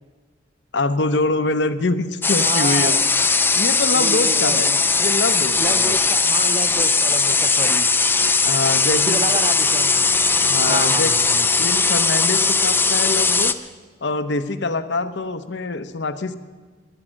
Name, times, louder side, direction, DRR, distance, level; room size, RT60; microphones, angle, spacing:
voice 1, 0.7-3.0 3.6-4.7 5.0-6.0 8.4-9.5 10.4-11.1 11.6-13.6 14.0-16.4, left 3 dB, 75° left, 11 dB, 0.8 m, -24 dB
sound 1, 2.2-13.5, left 4 dB, 10° left, 0.4 m, -18 dB
voice 2, 2.4-3.1 3.9-4.8 5.6-7.9 8.9-10.1 10.6-11.5, right 3 dB, 35° right, 13 dB, 0.6 m, -29 dB
21.0 x 9.9 x 6.4 m, 1.4 s
head